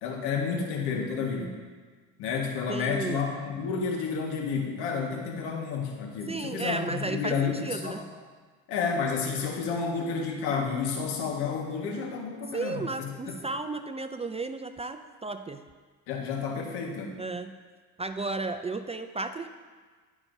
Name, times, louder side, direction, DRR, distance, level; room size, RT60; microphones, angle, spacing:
voice 1, 0.0-1.5 2.2-8.0 8.7-13.1 16.1-17.2, left 5 dB, 75° left, 1 dB, 1.8 m, -30 dB
voice 2, 2.7-3.3 6.3-8.1 12.5-15.6 17.2-17.5 18.0-19.5, right 3 dB, 15° right, 8 dB, 0.4 m, -34 dB
17.0 x 6.0 x 2.7 m, 1.5 s
supercardioid pair, 80°, 40 cm